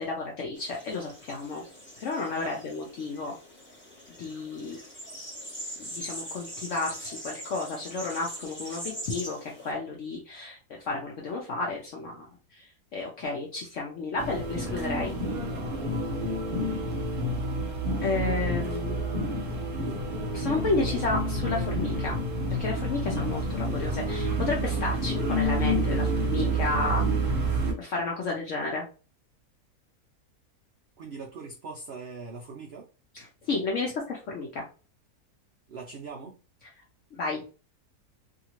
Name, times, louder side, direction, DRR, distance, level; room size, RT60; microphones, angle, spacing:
voice 1, 0.0-1.6 2.0-3.3 4.1-4.8 5.8-12.3 12.6-12.7 12.9-15.1 18.0-19.0 20.3-22.2 22.5-27.0 27.8-28.8 33.5-34.7 37.2-37.4, left 3 dB, 60° left, -1 dB, 0.9 m, -32 dB
sound 1, 0.5-9.7, equal, 10° left, 0.7 m, -42 dB
sound 2, 14.2-27.7, right 1 dB, 45° right, 0.9 m, -28 dB
voice 2, 20.4-21.0 31.0-32.9 35.7-36.4, right 4 dB, 70° right, 0 dB, 0.6 m, -41 dB
2.7 x 2.6 x 2.9 m, 0.34 s
omnidirectional pair, 1.6 m